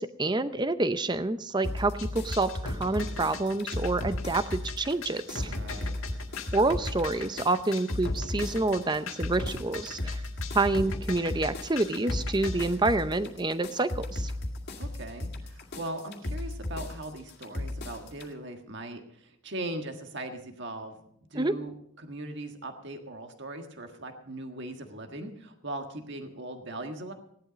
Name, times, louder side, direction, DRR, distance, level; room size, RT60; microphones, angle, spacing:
voice 1, 0.0-5.5 6.5-10.2 10.5-14.3 21.3-21.5, right 2 dB, 20° right, 12 dB, 0.7 m, -28 dB
sound 1, 1.6-18.3, left 1 dB, 50° left, 2.1 m, -36 dB
sound 2, 2.0-12.7, left 2 dB, 70° left, 1.7 m, -37 dB
voice 2, 5.5-5.9 14.8-20.9 21.3-27.1, right 1 dB, 55° right, 5 dB, 1.6 m, -39 dB
17.0 x 11.5 x 5.1 m, 0.70 s
head